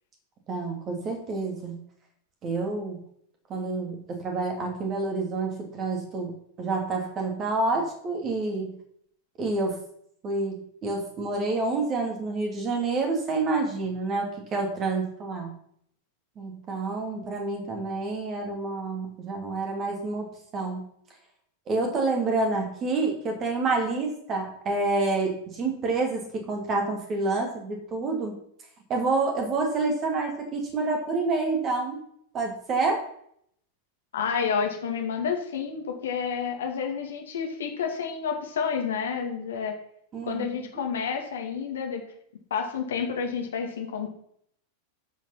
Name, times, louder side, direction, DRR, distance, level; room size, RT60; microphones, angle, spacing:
voice 1, 0.5-1.7 2.4-3.0 3.5-6.3 6.6-8.8 9.4-9.8 10.2-15.5 16.4-20.9 21.7-28.3 28.9-32.0 32.3-33.0 40.1-40.5, right 3 dB, 30° right, 2 dB, 2.8 m, -28 dB
voice 2, 34.1-39.7 40.2-42.0 42.5-44.1, left 6 dB, 65° left, 2 dB, 2.3 m, -29 dB
12.0 x 5.7 x 5.8 m, 0.69 s
figure-of-eight pair, 90°, 0 cm